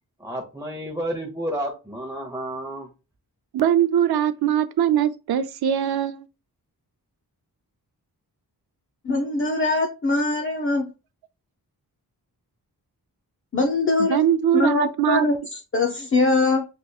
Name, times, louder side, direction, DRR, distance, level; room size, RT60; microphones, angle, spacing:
voice 1, 0.2-2.9, right 1 dB, 10° right, 0.8 m, -31 dB
voice 2, 3.5-6.2 14.1-15.3, right 10 dB, 85° right, 0.6 m, -21 dB
voice 3, 9.0-10.9 13.5-14.2 14.5-16.7, left 2 dB, 35° left, 0.6 m, -22 dB
6.5 x 2.9 x 2.3 m
wide cardioid pair, 125°, 37 cm